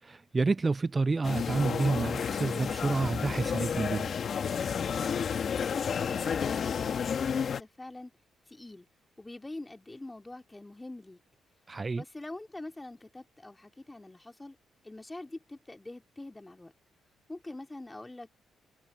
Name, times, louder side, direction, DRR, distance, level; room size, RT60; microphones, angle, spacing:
voice 1, 0.0-4.1 11.7-12.0, right 3 dB, 30° right, 0.4 m, -29 dB
sound 1, 1.2-7.6, left 7 dB, 55° left, 1.7 m, -31 dB
voice 2, 5.8-8.1 8.5-8.9 9.2-11.2 12.0-14.6 14.8-16.7 17.3-18.3, left 2 dB, 15° left, 3.7 m, -45 dB
supercardioid pair, 60°, 0 cm